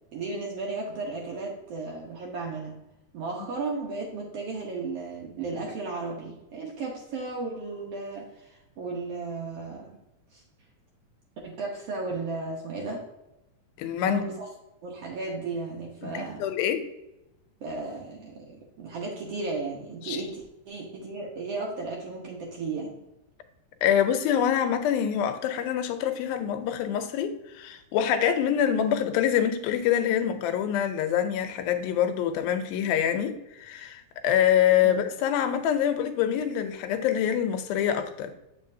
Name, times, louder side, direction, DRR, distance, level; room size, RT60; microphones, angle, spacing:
voice 1, 0.1-2.7 3.1-10.0 10.3-10.4 11.4-13.0 14.1-14.5 14.8-16.5 17.6-22.9 34.8-35.0, right 3 dB, 70° right, 1.4 m, -34 dB
voice 2, 13.8-14.2 16.0-16.8 20.1-20.2 23.8-38.3, left 9 dB, 90° left, 2.5 m, -25 dB
7.5 x 5.3 x 2.7 m
omnidirectional pair, 4.1 m